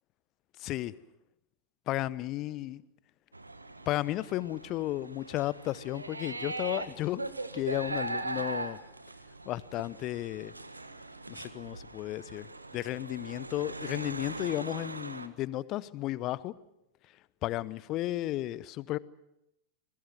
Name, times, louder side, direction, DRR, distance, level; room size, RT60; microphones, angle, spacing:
voice 1, 0.6-1.0 1.9-2.8 3.9-7.2 7.5-8.8 9.5-10.5 11.3-12.5 12.7-16.5 17.4-19.0, left 15 dB, 35° left, 19 dB, 0.9 m, -33 dB
sound 1, 3.3-15.3, right 2 dB, 80° right, 1.4 m, -40 dB
27.5 x 21.5 x 6.1 m, 0.86 s
figure-of-eight pair, 90°, 0 cm